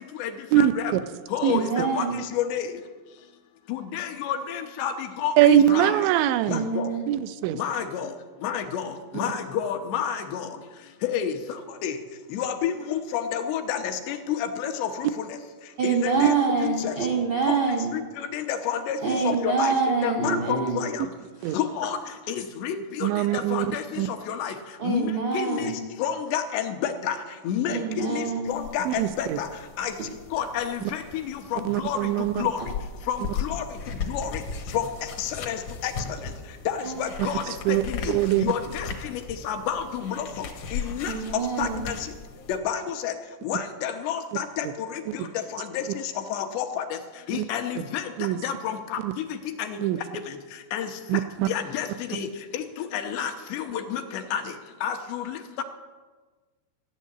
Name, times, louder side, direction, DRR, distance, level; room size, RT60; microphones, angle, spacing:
voice 1, 0.6-0.9 1.3-2.7 3.7-6.0 6.5-6.9 7.5-8.1 8.4-10.5 11.0-11.3 11.8-12.0 12.3-15.4 15.8-17.0 17.5-17.6 17.9-19.7 20.0-21.1 21.5-22.0 22.3-24.5 24.8-25.7 26.0-27.2 27.4-29.5 29.8-29.9 30.3-32.6 33.1-33.6 34.1-34.4 34.7-35.9 36.7-40.5 40.7-41.1 41.6-42.0 42.5-43.1 43.4-46.0 46.3-47.0 47.3-48.1 48.4-49.9 50.7-50.9 51.4-52.3 52.5-54.4 54.8-55.6, left 9 dB, 80° left, 6 dB, 3.0 m, -30 dB
voice 2, 1.5-2.2 6.5-7.0 15.8-17.9 19.0-20.8 21.4-21.6 24.8-25.8 27.7-28.6 36.8-37.0 41.1-41.8, right 5 dB, 55° right, 0 dB, 1.3 m, -26 dB
voice 3, 5.4-6.6 7.1-7.6 21.4-21.6 23.0-23.7 24.0-24.1 28.9-29.4 31.7-32.4 37.7-37.8 38.1-38.5 48.2-48.4 49.0-49.1 49.8-50.0 51.1-51.5, right 12 dB, 85° right, 11 dB, 2.9 m, -22 dB
sound 1, 28.5-42.6, left 5 dB, 65° left, 1.9 m, -37 dB
15.0 x 7.5 x 9.8 m, 1.3 s
omnidirectional pair, 5.2 m